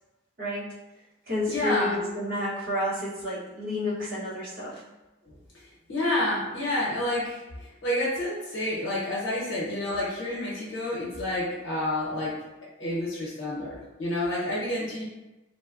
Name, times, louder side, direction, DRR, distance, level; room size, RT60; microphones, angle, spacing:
voice 1, 0.4-0.7 1.3-4.8, left 1 dB, 45° right, -8 dB, 0.9 m, -30 dB
voice 2, 1.5-2.0 5.9-7.4 7.8-12.3 12.8-15.0, left 1 dB, 75° left, -6 dB, 0.9 m, -29 dB
2.9 x 2.2 x 2.4 m, 1.0 s
head